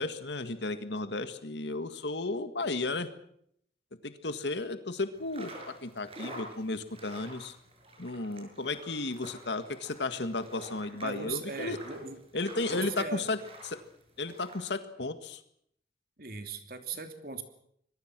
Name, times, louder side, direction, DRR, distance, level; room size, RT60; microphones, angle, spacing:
voice 1, 0.0-3.1 4.0-7.5 8.0-11.8 12.3-13.4 13.6-13.8 14.2-15.4, left 3 dB, 85° left, 10 dB, 1.8 m, -34 dB
sound 1, 5.1-14.7, right 1 dB, 35° right, 6.5 m, -48 dB
voice 2, 11.0-12.2 12.6-13.2 16.2-17.4, right 4 dB, 55° right, 7 dB, 2.9 m, -38 dB
26.0 x 22.0 x 6.1 m, 0.69 s
head